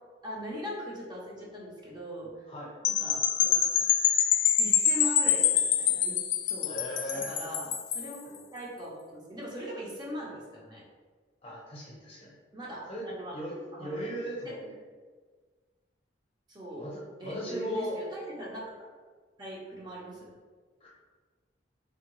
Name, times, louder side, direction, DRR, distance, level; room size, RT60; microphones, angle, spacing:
voice 1, 0.2-2.5 2.8-3.6 4.6-6.2 6.4-6.8 7.0-10.8 12.5-13.4 13.7-14.1 14.4-14.5 16.5-16.9 17.2-18.7 19.4-20.3, equal, 25° right, -5 dB, 0.6 m, -40 dB
sound 1, 2.8-8.1, left 9 dB, 90° left, 0.3 m, -25 dB
voice 2, 6.6-7.3 8.3-8.4 11.4-12.3 12.9-13.1 13.3-14.8 16.8-18.0 20.8-20.9, equal, 30° left, -4 dB, 0.7 m, -38 dB
3.5 x 2.2 x 3.0 m, 1.5 s
head